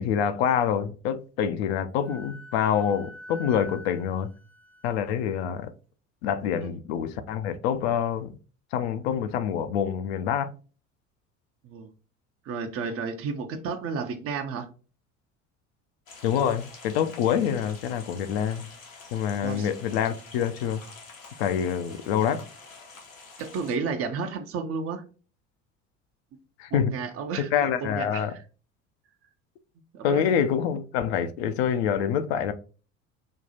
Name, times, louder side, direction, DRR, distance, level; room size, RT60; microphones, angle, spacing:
voice 1, 0.0-4.3 4.8-5.7 6.2-8.4 8.7-10.5 16.2-18.7 19.1-20.8 21.4-22.4 26.6-26.9 27.5-28.3 30.0-32.5, left 8 dB, 55° left, 0.5 m, -26 dB
Wind instrument woodwind instrument, 2.0-5.5, left 1 dB, 70° right, 1.0 m, -46 dB
voice 2, 12.4-14.7 19.4-19.7 23.4-25.0 26.7-28.4 29.9-30.4, right 5 dB, 35° right, 0.6 m, -32 dB
sound 1, 16.1-23.8, left 4 dB, 80° left, 1.0 m, -47 dB
5.3 x 2.3 x 2.7 m
figure-of-eight pair, 65°, 39 cm